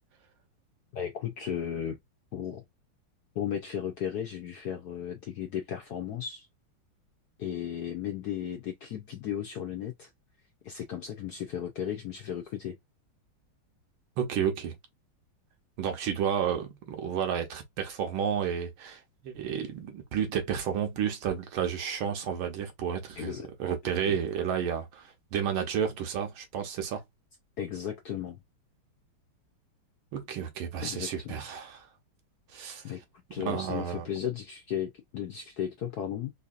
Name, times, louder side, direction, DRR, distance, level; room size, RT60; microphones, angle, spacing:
voice 1, 0.9-2.0 2.3-2.6 3.3-6.5 7.4-10.1 10.6-12.8 23.2-23.5 24.0-24.1 27.6-28.4 30.8-31.3 32.8-33.0 33.3-36.3, left 9 dB, 70° left, 0.9 m, -35 dB
voice 2, 14.2-14.7 15.8-23.3 23.6-27.0 30.1-31.9 32.5-32.8 33.4-34.1, right 8 dB, 75° right, 1.7 m, -31 dB
3.9 x 2.7 x 2.4 m
omnidirectional pair, 2.3 m